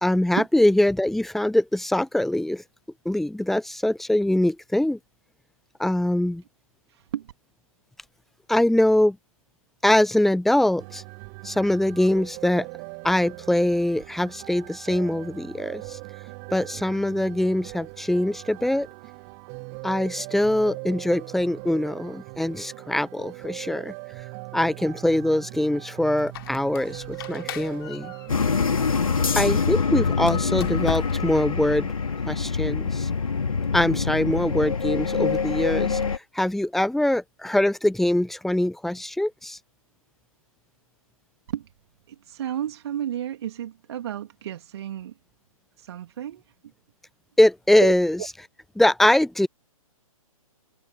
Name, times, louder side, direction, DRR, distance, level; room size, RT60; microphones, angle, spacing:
voice 1, 0.0-2.6 3.0-5.0 5.8-6.4 8.5-9.2 9.8-11.0 11.4-12.7 13.0-16.0 16.5-18.9 19.8-23.9 24.5-28.1 29.3-31.9 32.3-33.1 33.7-39.6 47.4-48.2 48.8-49.5, left 1 dB, ahead, 0.9 m, -23 dB
voice 2, 6.9-7.3 41.5-41.7 42.1-45.1 45.8-46.4 47.8-48.3, right 10 dB, 45° right, 2.9 m, -32 dB
sound 1, 10.8-28.3, right 40 dB or more, 25° right, 2.6 m, -40 dB
Squeak, 26.2-29.4 30.2-31.5, left 12 dB, 40° left, 3.7 m, -36 dB
sound 2, 28.3-36.2, left 5 dB, 65° left, 3.1 m, -25 dB
figure-of-eight pair, 125°, 19 cm